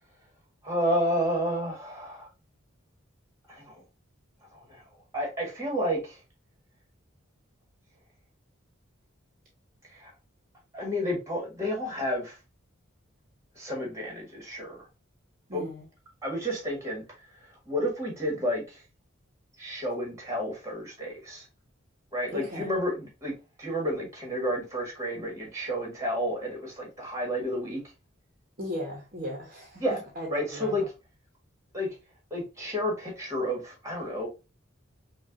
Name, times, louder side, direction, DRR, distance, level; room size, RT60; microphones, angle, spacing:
voice 1, 0.6-2.3 3.5-3.7 4.5-4.8 5.1-6.2 9.9-10.1 10.7-12.3 13.5-14.8 15.5-15.6 16.2-17.0 17.7-18.8 19.6-21.4 22.1-27.8 29.8-30.0 30.3-30.8 31.7-31.9 32.3-34.3, equal, 15° right, 1.6 m, -31 dB
voice 2, 15.5-15.8 22.3-22.7 28.6-29.8 30.2-30.8, left 1 dB, 40° right, 1.0 m, -37 dB
5.2 x 2.4 x 2.5 m
head